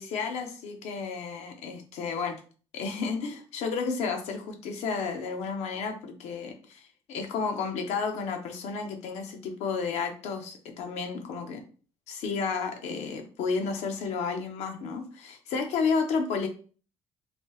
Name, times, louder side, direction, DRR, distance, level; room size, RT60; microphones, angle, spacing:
voice 1, 0.0-2.4 2.7-11.6 12.1-16.5, left 5 dB, 75° left, 4 dB, 0.8 m, -32 dB
3.1 x 2.7 x 3.1 m, 0.39 s
cardioid pair, 145°, 12 cm